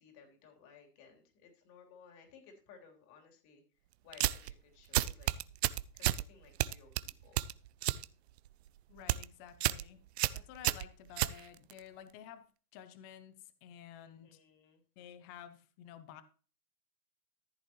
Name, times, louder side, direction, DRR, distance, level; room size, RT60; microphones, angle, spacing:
voice 1, 0.0-3.6 4.0-5.3 5.9-7.4 14.0-14.8, left 6 dB, 35° left, 2 dB, 3.5 m, -59 dB
sound 1, 4.1-4.5 4.9-6.2 6.6-8.0 8.4-8.7 9.0-9.3 9.6-9.8 10.2-11.8, right 14 dB, 45° right, 0.5 m, -31 dB
voice 2, 8.9-10.0 10.3-12.4 12.7-14.4 15.0-16.2, left 10 dB, 15° left, 13 dB, 0.4 m, -52 dB
14.0 x 8.5 x 3.1 m, 0.38 s
hypercardioid pair, 120°, 49 cm